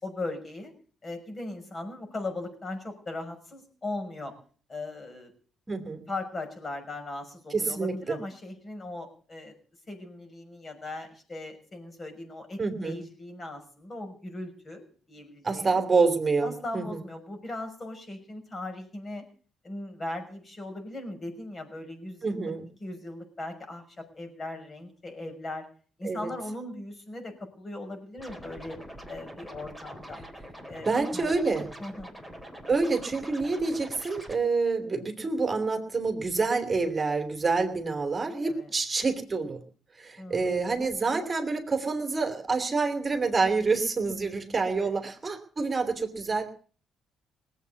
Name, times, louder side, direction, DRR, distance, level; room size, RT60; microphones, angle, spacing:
voice 1, 0.0-0.7 1.0-4.3 4.7-5.3 6.1-9.5 9.9-15.8 16.4-19.2 19.6-22.5 22.8-25.7 26.0-28.8 29.1-30.2 30.7-32.2 38.4-38.7 40.2-40.6 44.8-44.9, left 2 dB, 30° left, 5 dB, 6.1 m, -39 dB
voice 2, 5.7-6.0 7.5-8.2 12.6-13.0 15.4-17.0 22.2-22.7 26.0-26.3 30.8-31.7 32.7-39.6 40.0-46.5, right 4 dB, 30° right, 6 dB, 3.0 m, -27 dB
Scratching (performance technique), 28.2-34.4, equal, 10° left, 3.8 m, -44 dB
19.5 x 8.4 x 8.3 m, 0.43 s
cardioid pair, 90°, 0 cm